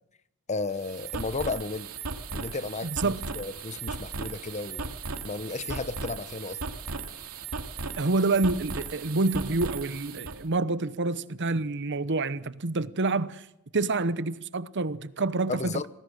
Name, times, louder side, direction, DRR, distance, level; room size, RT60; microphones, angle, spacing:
voice 1, 0.5-1.9 2.3-4.9 5.2-6.6 15.5-15.9, left 3 dB, 35° left, 1.0 m, -33 dB
sound 1, 0.6-10.4, right 4 dB, 90° right, 2.8 m, -37 dB
voice 2, 2.8-3.3 8.0-13.5 13.7-15.8, right 3 dB, 55° right, 1.0 m, -27 dB
26.5 x 18.5 x 6.6 m
head